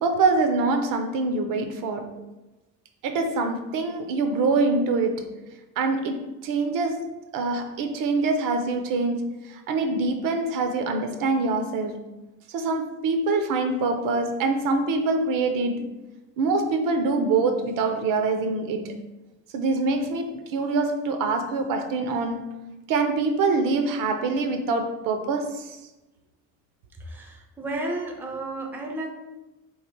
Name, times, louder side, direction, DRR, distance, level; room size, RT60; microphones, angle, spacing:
voice 1, 0.0-2.2 3.0-5.3 5.8-7.0 7.3-12.1 12.5-15.9 16.4-19.0 19.5-22.5 22.9-25.8, right 3 dB, 75° right, 6 dB, 0.6 m, -25 dB
voice 2, 27.0-29.1, right 2 dB, 5° right, 2 dB, 0.4 m, -32 dB
3.2 x 2.8 x 4.5 m, 1.0 s
cardioid pair, 150°, 33 cm